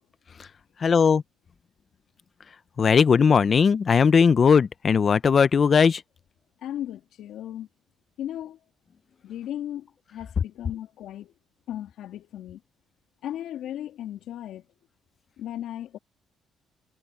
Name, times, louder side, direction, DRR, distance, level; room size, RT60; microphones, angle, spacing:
voice 1, 0.8-1.2 2.8-6.0, left 6 dB, 45° left, 0.8 m, -18 dB
voice 2, 6.6-7.7 8.2-8.6 9.2-11.3 11.7-12.6 13.2-14.6 15.4-16.0, left 11 dB, 80° left, 3.4 m, -36 dB
cardioid pair, 90°, 0 cm